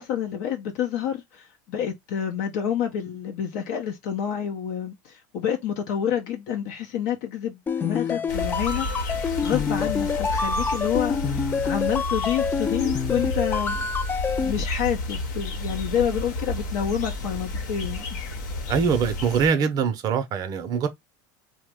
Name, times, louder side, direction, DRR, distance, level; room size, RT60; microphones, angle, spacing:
voice 1, 0.0-13.8 14.4-18.2, left 9 dB, 65° left, 0.6 m, -28 dB
sound 1, 7.7-14.5, left 5 dB, 20° left, 0.3 m, -27 dB
sound 2, 8.3-19.5, left 2 dB, 80° left, 1.0 m, -31 dB
voice 2, 18.7-20.9, right 6 dB, 40° right, 0.5 m, -23 dB
2.9 x 2.1 x 3.4 m
supercardioid pair, 120°, 10 cm